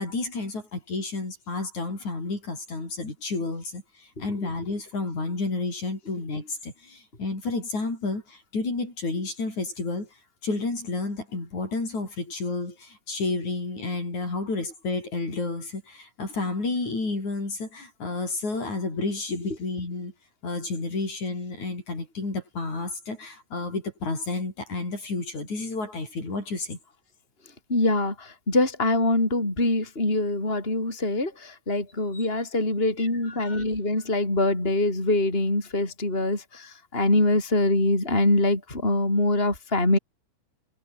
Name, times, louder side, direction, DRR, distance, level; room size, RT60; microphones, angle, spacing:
voice 1, 0.0-10.1 10.4-20.1 20.4-26.8 32.1-32.3 33.0-33.6, left 3 dB, 50° left, 9.4 m, -31 dB
voice 2, 27.7-40.0, left 2 dB, 15° left, 6.5 m, -24 dB
omnidirectional pair, 4.1 m